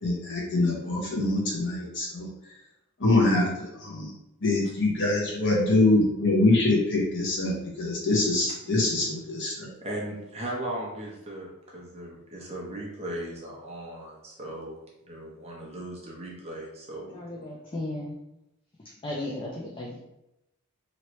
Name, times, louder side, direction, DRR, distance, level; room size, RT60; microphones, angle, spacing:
voice 1, 0.0-2.3 3.0-4.1 4.4-9.7, left 2 dB, 55° left, -3 dB, 1.0 m, -24 dB
voice 2, 9.8-14.8 15.1-17.2, right 1 dB, 30° right, -3 dB, 0.8 m, -37 dB
voice 3, 17.1-18.2 18.8-20.0, left 1 dB, 20° left, -3 dB, 0.4 m, -35 dB
3.0 x 2.8 x 3.1 m, 0.88 s
head